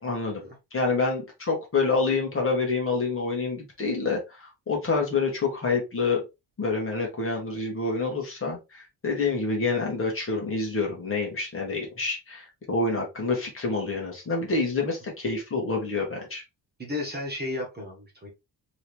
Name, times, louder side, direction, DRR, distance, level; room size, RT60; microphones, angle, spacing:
voice 1, 0.0-0.4 0.7-6.2 6.6-16.4, left 3 dB, 30° left, 0 dB, 1.4 m, -27 dB
voice 2, 16.8-18.3, left 2 dB, 25° right, -1 dB, 1.4 m, -33 dB
3.8 x 3.1 x 3.4 m, 0.23 s
wide cardioid pair, 180°, 42 cm